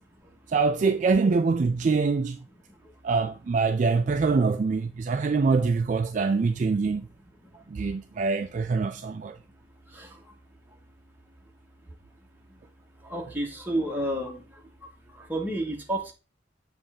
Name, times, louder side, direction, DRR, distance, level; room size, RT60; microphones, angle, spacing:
voice 1, 0.5-2.4 3.0-7.1 7.7-9.4, right 4 dB, 40° right, 0.3 m, -24 dB
voice 2, 13.1-14.4 15.3-16.1, right 1 dB, 10° right, 1.3 m, -30 dB
7.1 x 3.3 x 4.9 m
head